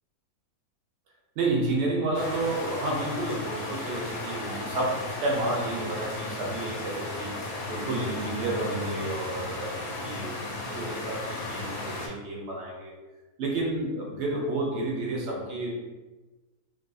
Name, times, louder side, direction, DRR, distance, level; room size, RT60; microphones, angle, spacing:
voice 1, 1.4-7.3 7.7-10.4 10.7-12.9 13.4-15.7, right 2 dB, 60° right, -2 dB, 0.7 m, -30 dB
sound 1, 2.1-12.1, left 2 dB, 75° left, 1.0 m, -35 dB
2.6 x 2.6 x 2.2 m, 1.2 s
omnidirectional pair, 1.7 m